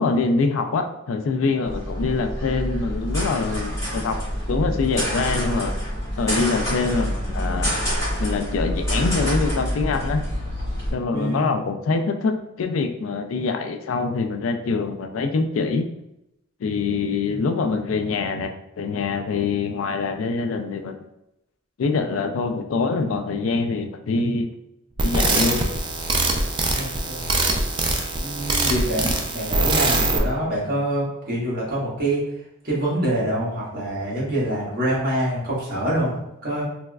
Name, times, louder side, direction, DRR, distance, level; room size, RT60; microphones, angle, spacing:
voice 1, 0.0-4.2 4.5-7.7 8.2-10.2 10.9-15.9 16.6-21.0 21.8-24.5 25.0-25.7, left 4 dB, 85° left, 7 dB, 0.4 m, -24 dB
sound 1, 1.6-10.9, equal, 15° left, 1.5 m, -27 dB
voice 2, 11.1-11.5 17.3-17.4 26.7-27.3 28.2-32.2 32.6-36.1 36.4-36.6, right 1 dB, 50° right, -7 dB, 1.4 m, -25 dB
sound 2, 25.0-30.2, right 2 dB, 25° right, 0.4 m, -23 dB
3.4 x 3.0 x 2.3 m, 0.84 s
head